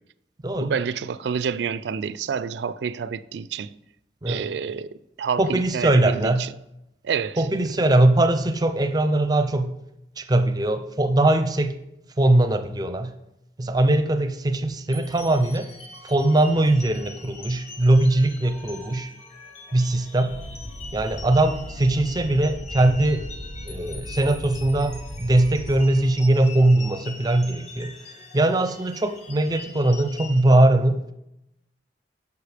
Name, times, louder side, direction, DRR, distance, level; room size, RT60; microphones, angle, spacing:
voice 1, 0.6-3.8 4.3-6.5 7.0-7.5, right 6 dB, 75° right, 0.3 m, -28 dB
voice 2, 5.4-6.4 7.4-9.7 10.2-11.7 12.2-13.1 13.6-15.7 16.0-19.1 19.7-20.4 20.9-23.2 23.6-27.9 28.3-31.1, right 1 dB, 20° right, 0.5 m, -21 dB
sound 1, 14.9-30.4, left 3 dB, 40° left, 1.0 m, -43 dB
sound 2, 20.3-26.1, equal, 65° left, 1.3 m, -37 dB
9.6 x 6.8 x 3.4 m
head